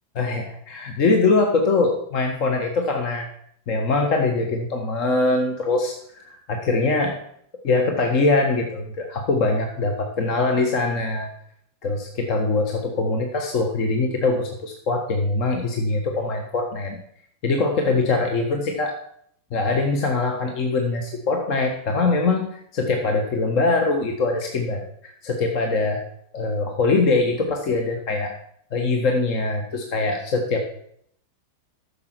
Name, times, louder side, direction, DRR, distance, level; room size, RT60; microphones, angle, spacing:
voice 1, 0.1-3.3 3.7-7.2 7.6-11.3 11.8-17.0 17.4-18.9 19.5-26.1 26.3-28.3 28.7-30.7, left 3 dB, 40° left, 3 dB, 1.4 m, -23 dB
14.0 x 6.9 x 4.6 m, 0.67 s
figure-of-eight pair, 90°, 0 cm